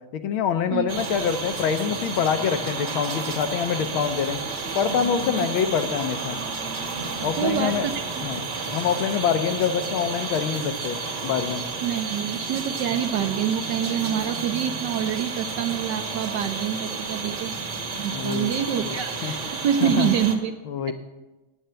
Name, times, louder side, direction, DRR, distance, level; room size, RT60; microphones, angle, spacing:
voice 1, 0.1-4.4 4.7-6.4 7.2-7.9 8.2-8.4 8.7-11.6 18.1-19.3 19.8-20.1 20.6-20.9, left 7 dB, 75° left, 8 dB, 1.6 m, -25 dB
sound 1, 0.9-20.4, right 4 dB, 55° right, 1.8 m, -31 dB
voice 2, 7.4-8.3 11.8-17.5 18.0-20.5 20.9-21.0, right 9 dB, 70° right, 7 dB, 1.1 m, -26 dB
9.1 x 8.6 x 8.0 m, 1.1 s
omnidirectional pair, 2.3 m